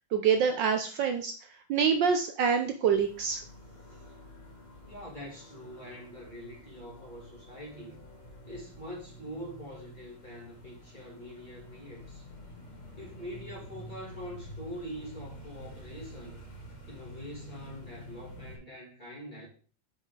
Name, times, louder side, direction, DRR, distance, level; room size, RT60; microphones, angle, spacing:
voice 1, 0.1-3.4, right 6 dB, 70° right, 1.3 m, -26 dB
sound 1, 2.9-18.6, equal, 80° left, 3.1 m, -48 dB
voice 2, 4.8-8.0 8.4-12.3 13.0-16.5 16.9-19.5, equal, 20° left, 2.8 m, -44 dB
7.1 x 4.9 x 4.9 m
omnidirectional pair, 2.3 m